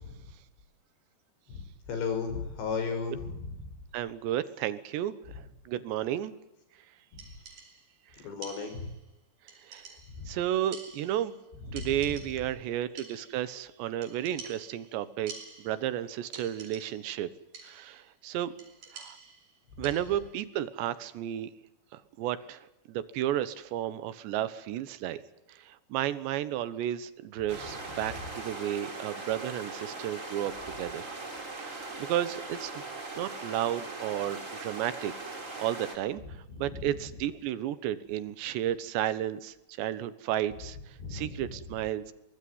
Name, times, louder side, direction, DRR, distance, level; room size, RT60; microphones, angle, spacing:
voice 1, 1.9-3.6 8.2-8.9 10.1-10.3 11.7-11.9 19.8-19.9 36.5-36.9 41.0-41.4, left 5 dB, 80° left, 7 dB, 7.3 m, -34 dB
voice 2, 3.9-5.1 5.7-6.3 9.6-9.9 10.3-11.3 11.7-15.3 15.6-17.3 17.6-18.5 18.9-19.2 19.8-21.5 21.9-25.2 25.5-31.0 31.6-32.7 33.2-42.1, right 12 dB, 80° right, 14 dB, 3.5 m, -33 dB
sound 1, 7.2-8.0 8.4-9.1 9.5-10.3 10.7-11.5 11.8-12.6 13.0-13.5 14.0-16.0 16.3-17.2 17.5-18.0 18.6-20.3, right 4 dB, 50° right, 6.2 m, -49 dB
sound 2, 27.5-36.0, right 3 dB, 20° right, 3.6 m, -40 dB
24.0 x 19.5 x 9.5 m, 0.86 s
omnidirectional pair, 5.0 m